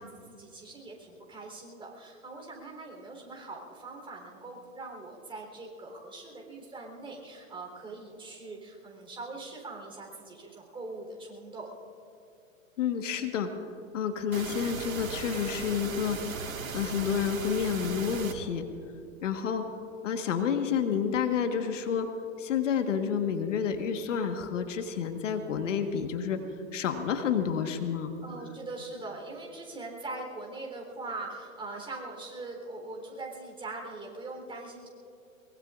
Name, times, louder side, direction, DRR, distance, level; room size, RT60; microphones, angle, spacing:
voice 1, 0.0-11.7 28.2-34.9, right 2 dB, 10° right, -1 dB, 3.6 m, -42 dB
voice 2, 12.8-13.5 13.9-16.2 16.7-18.7 19.2-19.6 20.0-22.1 22.4-26.4 26.7-28.1, left 7 dB, 65° left, 6 dB, 1.5 m, -29 dB
sound 1, 14.3-18.3, right 5 dB, 85° right, 1.8 m, -37 dB
23.0 x 22.0 x 2.5 m, 2.7 s
hypercardioid pair, 125°, 40 cm